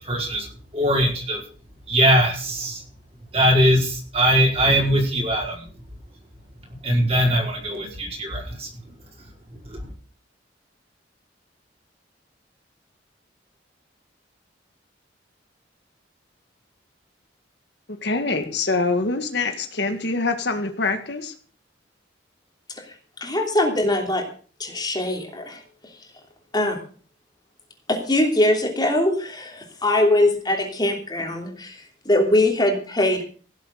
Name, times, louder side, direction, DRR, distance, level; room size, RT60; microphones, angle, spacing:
voice 1, 0.0-0.5 0.7-1.4 1.9-2.8 3.3-5.7 6.8-8.9 9.5-9.9, equal, 35° right, -1 dB, 5.1 m, -21 dB
voice 2, 18.0-21.3, left 3 dB, 65° left, 7 dB, 1.8 m, -24 dB
voice 3, 23.2-24.2 24.6-25.6 26.5-26.8 27.9-33.2, left 1 dB, 20° left, 2 dB, 3.0 m, -22 dB
16.5 x 7.8 x 6.7 m, 0.42 s
head